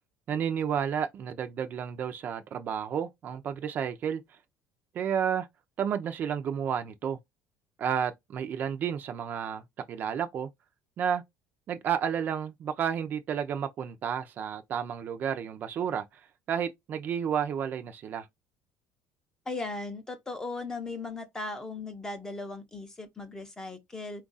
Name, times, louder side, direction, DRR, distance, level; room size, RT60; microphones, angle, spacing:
voice 1, 0.3-4.2 4.9-5.5 5.8-7.2 7.8-9.6 9.9-10.5 11.0-11.2 11.7-16.0 16.5-18.3, right 8 dB, 35° right, 0.5 m, -31 dB
voice 2, 19.5-24.2, left 3 dB, 10° left, 0.6 m, -37 dB
4.4 x 2.4 x 3.9 m
cardioid pair, 165°, 5 cm